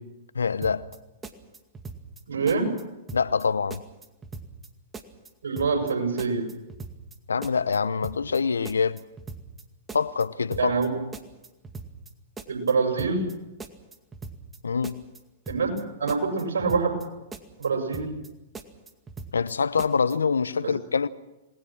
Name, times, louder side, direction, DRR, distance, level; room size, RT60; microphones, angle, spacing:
voice 1, 0.3-0.9 3.1-3.8 7.3-9.0 9.9-10.7 14.6-15.0 19.3-21.1, left 5 dB, 85° left, 0.9 m, -25 dB
sound 1, 0.6-2.2 2.5-2.8 3.1-3.4 3.7-4.7 4.9-5.3 5.6-5.9 6.2-7.2 7.4-7.8 8.0-8.4 8.7-9.6 9.9-10.2 10.5-10.9 11.1-12.1 12.4-12.7 13.0-13.3 13.6-14.6 14.8-15.2 15.5-15.8 16.1-17.1 17.3-17.7 17.9-18.3 18.5-19.5 19.8-20.1, right 4 dB, 15° right, 2.2 m, -40 dB
voice 2, 2.3-2.7 5.4-6.4 10.6-10.9 12.5-13.2 15.5-15.7 16.0-16.9 17.6-18.1, right 4 dB, 75° right, 7.4 m, -25 dB
27.5 x 20.0 x 6.1 m
hypercardioid pair, 115°, 0 cm